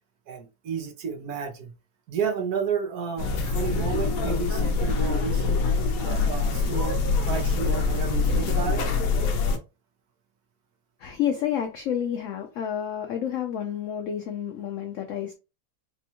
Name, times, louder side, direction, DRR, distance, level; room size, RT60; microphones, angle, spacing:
voice 1, 0.3-1.7 2.1-5.6 6.0-8.8, right 6 dB, 65° right, 1.1 m, -32 dB
sound 1, 3.2-9.6, left 4 dB, 65° left, 1.0 m, -24 dB
voice 2, 11.0-15.3, left 9 dB, 90° left, 0.6 m, -29 dB
4.2 x 2.2 x 2.9 m
omnidirectional pair, 1.9 m